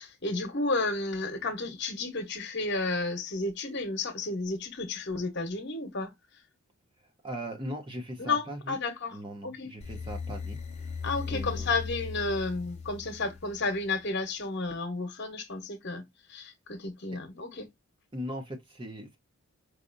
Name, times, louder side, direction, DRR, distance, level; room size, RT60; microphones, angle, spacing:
voice 1, 0.0-6.1 8.2-9.2 9.4-9.7 11.0-17.7, left 3 dB, 50° left, 1.1 m, -32 dB
voice 2, 7.2-8.8 9.1-11.0 11.3-11.7 18.1-19.2, equal, 20° right, 0.8 m, -39 dB
sound 1, 9.8-13.9, left 5 dB, 30° left, 0.7 m, -38 dB
4.9 x 2.7 x 2.5 m
head